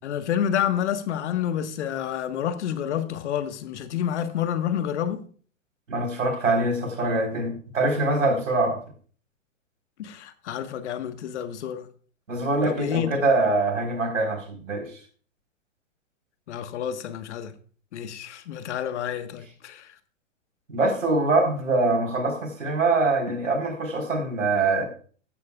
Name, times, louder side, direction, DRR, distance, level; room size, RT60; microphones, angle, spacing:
voice 1, 0.0-5.2 10.0-11.9 12.7-13.2 16.5-17.5 17.9-20.0, left 9 dB, 60° left, 1.5 m, -29 dB
voice 2, 5.9-8.8 12.3-14.9 20.7-24.8, right 2 dB, 80° right, 4.2 m, -24 dB
16.0 x 9.4 x 2.4 m
hypercardioid pair, 110°, 39 cm